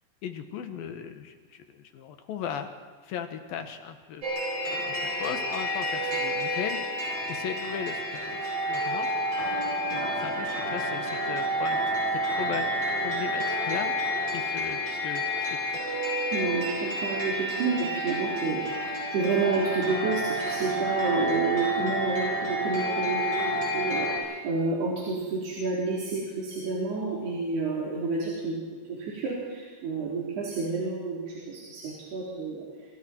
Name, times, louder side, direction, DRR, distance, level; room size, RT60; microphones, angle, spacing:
voice 1, 0.2-2.7 3.0-4.2 4.7-9.1 9.9-11.8 12.1-12.7 13.0-13.9 14.3-15.8, left 7 dB, 70° left, 7 dB, 3.0 m, -37 dB
sound 1, 4.2-24.2, equal, 35° right, 8.9 m, -29 dB
voice 2, 16.3-28.6 28.9-32.6, right 4 dB, 85° right, -6 dB, 6.0 m, -30 dB
28.0 x 27.5 x 4.6 m, 1.5 s
omnidirectional pair, 4.5 m